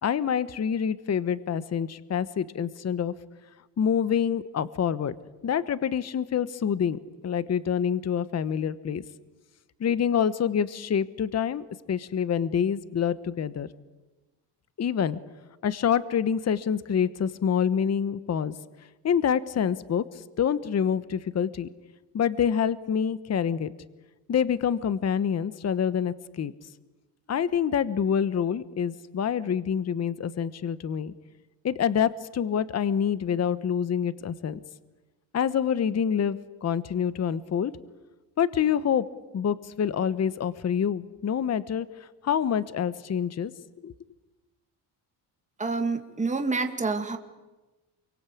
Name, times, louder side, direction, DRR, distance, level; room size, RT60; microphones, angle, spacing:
voice 1, 0.0-3.1 3.8-5.1 5.4-9.0 9.8-13.7 14.8-15.2 15.6-18.5 19.0-20.0 20.4-21.7 22.1-23.7 24.3-26.5 27.3-31.1 31.6-34.6 35.3-37.7 38.4-39.1 39.3-41.9 42.2-43.5 43.8-43.9, left 8 dB, 35° left, 15 dB, 1.1 m, -26 dB
voice 2, 45.6-47.2, right 3 dB, 15° right, 5 dB, 2.4 m, -28 dB
28.5 x 24.0 x 8.5 m, 1.1 s
cardioid pair, 110°, 45 cm